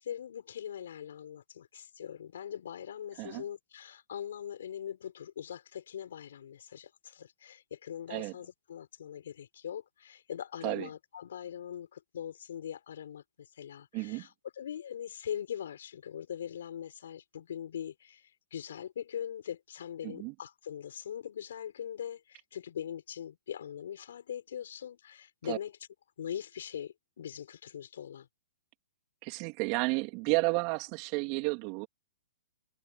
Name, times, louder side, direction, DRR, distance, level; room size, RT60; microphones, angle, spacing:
voice 1, 0.0-14.3 14.6-25.7 26.2-28.3, left 9 dB, 70° left, 7.0 m, -41 dB
voice 2, 13.9-14.3 20.0-20.3 25.5-25.6 29.2-31.9, right 28 dB, 40° right, 3.4 m, -32 dB
hypercardioid pair, 135°, 0 cm